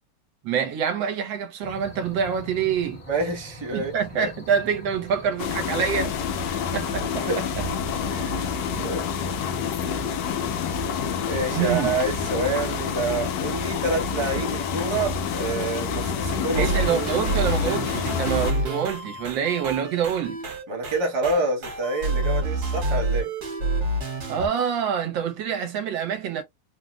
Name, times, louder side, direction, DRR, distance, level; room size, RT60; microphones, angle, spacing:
voice 1, 0.4-3.0 3.7-6.5 6.7-7.6 8.5-8.9 11.5-11.9 16.6-20.4 24.3-26.4, right 7 dB, 75° right, 1.4 m, -26 dB
sound 1, 1.6-13.1, left 2 dB, 35° left, 1.1 m, -44 dB
voice 2, 3.1-4.3 6.5-6.8 7.2-7.4 8.1-8.5 8.8-9.1 11.2-16.9 20.7-23.3, right 2 dB, 30° right, 0.5 m, -28 dB
sound 2, 5.4-18.5, left 6 dB, 75° left, 1.1 m, -28 dB
sound 3, 16.5-24.5, right 2 dB, 55° right, 1.5 m, -28 dB
3.7 x 2.1 x 2.3 m
omnidirectional pair, 2.1 m